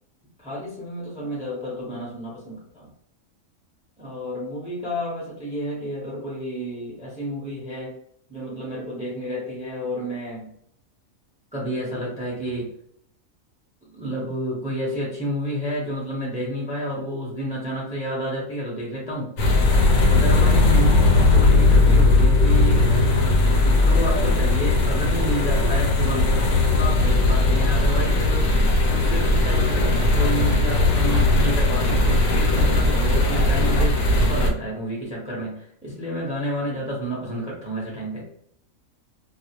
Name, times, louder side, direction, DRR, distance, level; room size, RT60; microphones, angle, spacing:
voice 1, 0.4-2.9 4.0-8.0 8.3-10.5 11.5-12.7 13.9-19.3 20.1-22.9 23.6-26.3 26.7-28.5 28.8-38.3, equal, 10° right, -4 dB, 0.5 m, -30 dB
sound 1, 19.4-34.5, left 2 dB, 75° left, 0.9 m, -18 dB
2.4 x 2.0 x 2.8 m, 0.69 s
omnidirectional pair, 1.5 m